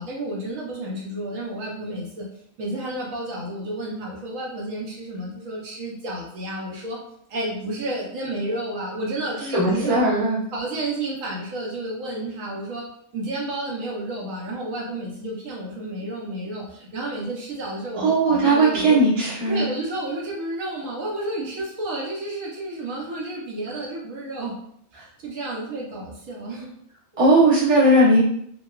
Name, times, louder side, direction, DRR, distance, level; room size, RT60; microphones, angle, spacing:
voice 1, 0.0-2.2 2.6-7.0 7.3-10.0 10.5-12.8 13.1-19.0 19.5-24.5 24.9-26.7, right 1 dB, 75° right, -3 dB, 1.0 m, -31 dB
voice 2, 9.5-10.4 18.0-19.7 27.2-28.2, right 1 dB, 25° right, -7 dB, 1.0 m, -18 dB
2.9 x 2.1 x 2.2 m, 0.67 s
omnidirectional pair, 1.4 m